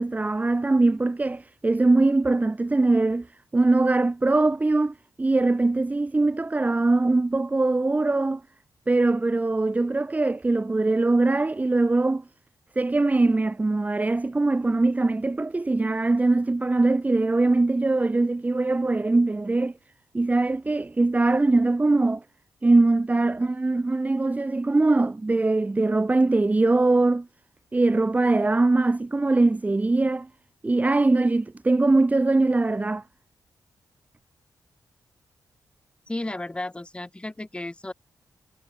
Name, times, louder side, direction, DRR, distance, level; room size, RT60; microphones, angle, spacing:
voice 1, 0.0-3.3 3.5-8.4 8.9-12.2 12.7-19.7 20.1-22.2 22.6-27.3 27.7-30.3 30.6-33.0, right 2 dB, 20° right, 1.4 m, -22 dB
voice 2, 36.1-37.9, left 2 dB, 15° left, 3.7 m, -33 dB
cardioid pair, 95°, 7 cm